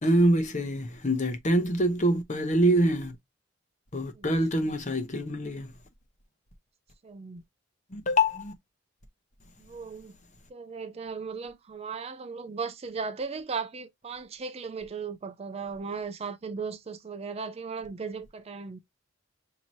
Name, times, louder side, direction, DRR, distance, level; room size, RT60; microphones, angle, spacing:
voice 1, 0.0-3.2 3.9-5.7 7.9-8.5, equal, 40° left, 0.9 m, -25 dB
voice 2, 7.0-7.4 9.6-10.2 10.5-18.8, right 5 dB, 30° right, 0.4 m, -37 dB
5.7 x 2.8 x 3.0 m
head